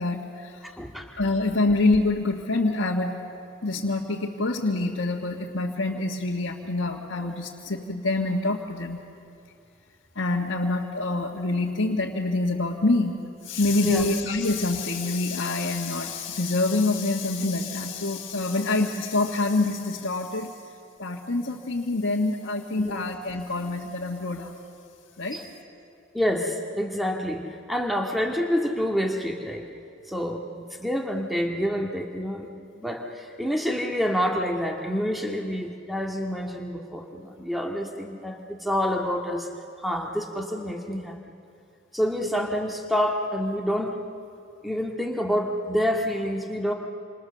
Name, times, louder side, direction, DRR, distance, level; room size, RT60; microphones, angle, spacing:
voice 1, 0.0-0.7 1.2-3.1 3.6-9.0 10.1-13.2 13.4-20.5 21.0-24.5 25.2-25.4, left 2 dB, 75° left, -4 dB, 1.7 m, -26 dB
voice 2, 0.6-1.1 13.8-14.1 22.8-23.0 25.3-25.5 26.1-29.7 30.1-32.5 32.8-39.5 39.8-41.2 41.9-44.0 44.6-46.7, equal, ahead, 1 dB, 1.9 m, -28 dB
28.5 x 26.5 x 6.9 m, 2.5 s
head